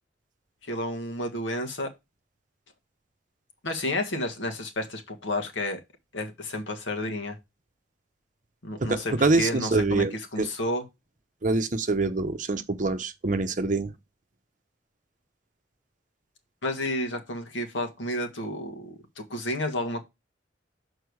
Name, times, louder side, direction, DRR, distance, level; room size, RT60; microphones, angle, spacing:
voice 1, 0.6-1.9 3.6-5.8 6.1-7.4 8.6-10.0 10.3-10.8 16.6-20.0, left 1 dB, 90° left, 1.6 m, -31 dB
voice 2, 8.8-10.5 11.4-13.9, right 3 dB, 45° right, 0.8 m, -25 dB
6.7 x 4.5 x 4.6 m
head